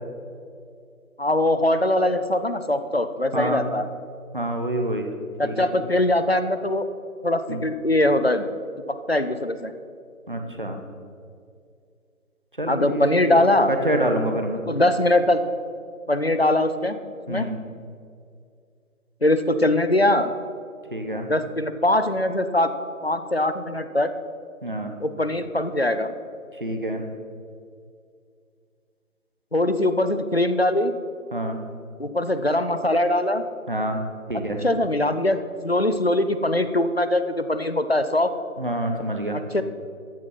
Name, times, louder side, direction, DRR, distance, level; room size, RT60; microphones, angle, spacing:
voice 1, 1.2-3.9 5.4-6.8 7.2-8.4 8.9-9.7 12.7-13.7 14.7-15.4 16.1-17.0 17.3-17.5 19.2-20.3 21.1-22.7 23.0-24.1 25.0-26.1 29.5-30.9 32.0-33.4 34.6-38.3 39.5-39.6, left 1 dB, 45° left, 10 dB, 0.6 m, -22 dB
voice 2, 4.3-5.1 5.4-5.7 7.5-7.6 10.3-10.8 12.6-13.4 13.7-14.6 17.3-17.6 20.9-21.3 24.6-24.9 26.6-27.0 31.3-31.6 33.7-34.0 34.3-34.6 38.6-39.4, right 1 dB, 35° right, 4 dB, 1.1 m, -26 dB
13.5 x 7.3 x 5.7 m, 2.3 s
figure-of-eight pair, 170°, 42 cm